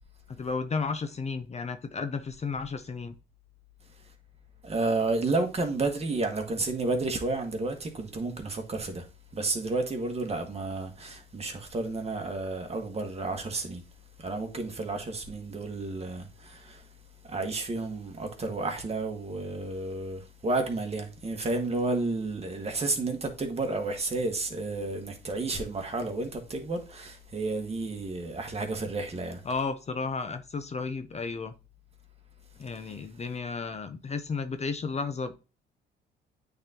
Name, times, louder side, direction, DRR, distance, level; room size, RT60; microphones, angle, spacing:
voice 1, 0.3-3.1 29.5-31.5 32.6-35.3, left 4 dB, 35° left, 0.7 m, -33 dB
voice 2, 4.6-9.0 9.3-13.8 14.2-16.9 17.3-29.4 32.8-33.0, right 3 dB, 30° right, 1.7 m, -31 dB
8.7 x 4.0 x 2.9 m
cardioid pair, 90°, 20 cm